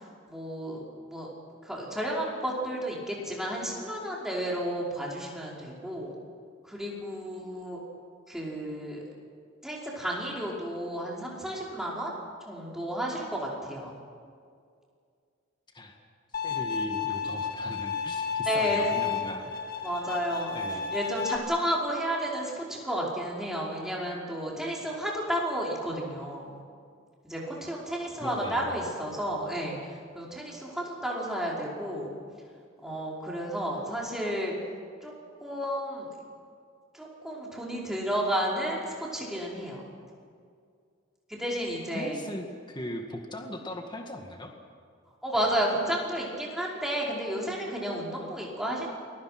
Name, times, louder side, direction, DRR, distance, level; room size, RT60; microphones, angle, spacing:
voice 1, 0.3-0.8 1.1-1.3 1.6-6.1 6.6-7.8 8.3-9.0 9.6-12.1 12.5-13.9 18.5-19.1 19.8-20.6 20.9-26.6 27.2-32.1 32.8-34.5 35.0-35.1 35.4-36.1 36.9-39.8 41.3-42.2 45.2-48.9, equal, ahead, -4 dB, 5.3 m, -32 dB
Bowed string instrument, 16.3-21.4, left 7 dB, 50° left, 2.2 m, -32 dB
voice 2, 16.4-19.5 20.5-20.8 28.2-28.8 41.9-44.5 45.6-45.8, left 1 dB, 25° left, 3 dB, 1.9 m, -39 dB
28.5 x 22.5 x 6.1 m, 2.2 s
head